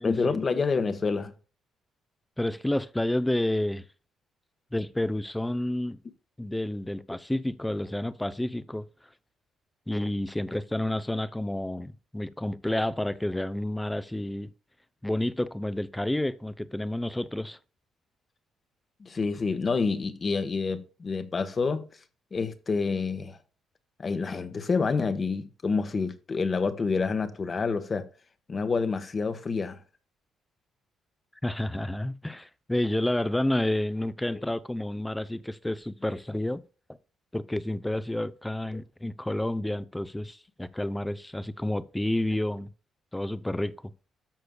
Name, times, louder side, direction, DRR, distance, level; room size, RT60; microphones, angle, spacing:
voice 1, 0.0-1.3 19.0-21.9 22.3-23.4 24.0-28.1 28.5-29.8, left 4 dB, 35° left, 1.1 m, -28 dB
voice 2, 2.4-3.8 4.7-6.0 6.4-8.9 9.9-14.5 15.0-17.6 31.4-36.6 37.3-42.7 43.1-43.7, left 1 dB, 5° left, 0.6 m, -30 dB
13.0 x 6.5 x 2.3 m
cardioid pair, 110°, 0 cm